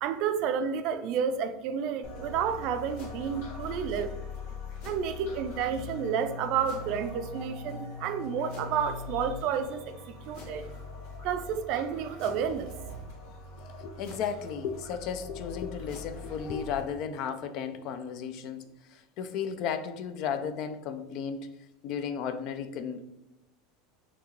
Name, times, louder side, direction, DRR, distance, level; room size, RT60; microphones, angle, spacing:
voice 1, 0.0-4.2 4.8-10.6 11.2-12.7, right 7 dB, 55° right, 0.4 m, -30 dB
sound 1, 2.0-16.8, left 4 dB, 75° left, 1.6 m, -42 dB
voice 2, 13.8-21.5 21.8-23.1, left 7 dB, 50° left, 0.4 m, -34 dB
5.8 x 2.9 x 3.0 m
supercardioid pair, 135°, 0 cm